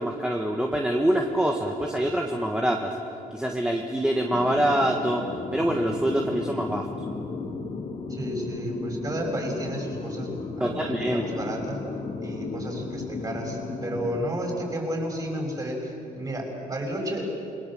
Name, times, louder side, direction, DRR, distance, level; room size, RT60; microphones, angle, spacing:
voice 1, 0.0-2.9 3.3-5.2 5.5-6.9 10.6-11.2, right 1 dB, 5° right, 1 dB, 1.6 m, -25 dB
sound 1, 4.3-14.2, left 4 dB, 40° left, 2.0 m, -35 dB
voice 2, 8.1-11.8 12.2-17.2, right 1 dB, 25° right, 1 dB, 6.3 m, -32 dB
28.5 x 22.0 x 7.7 m, 2.6 s
cardioid pair, 125°, 15 cm